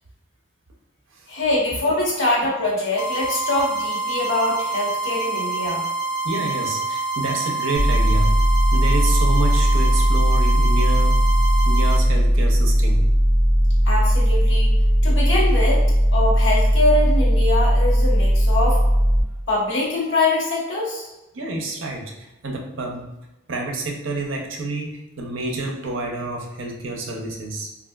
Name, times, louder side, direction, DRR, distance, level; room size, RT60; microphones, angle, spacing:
voice 1, 1.3-5.8 13.8-14.7 15.0-15.8 16.1-18.8 19.5-21.0, left 2 dB, 70° left, -4 dB, 1.1 m, -23 dB
sound 1, 3.0-12.0, right 3 dB, 90° left, 0.4 m, -26 dB
voice 2, 6.2-8.3 8.7-11.2 11.7-13.0 21.3-23.1 23.5-27.7, right 2 dB, 80° right, 1 dB, 0.6 m, -28 dB
sound 2, 7.8-19.2, equal, 15° right, 1.3 m, -17 dB
3.5 x 2.5 x 2.2 m, 0.97 s
head